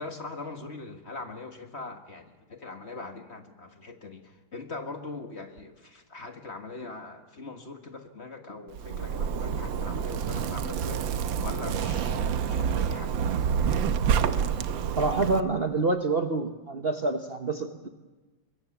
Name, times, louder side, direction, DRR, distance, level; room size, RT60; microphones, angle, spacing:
voice 1, 0.0-11.1 11.4-13.5, left 3 dB, 35° left, 6 dB, 1.8 m, -41 dB
Zipper (clothing), 8.7-15.4, right 7 dB, 90° right, 1.7 m, -28 dB
voice 2, 15.0-17.9, right 3 dB, 40° right, 6 dB, 1.1 m, -27 dB
23.5 x 21.5 x 7.2 m, 1.2 s
omnidirectional pair, 2.0 m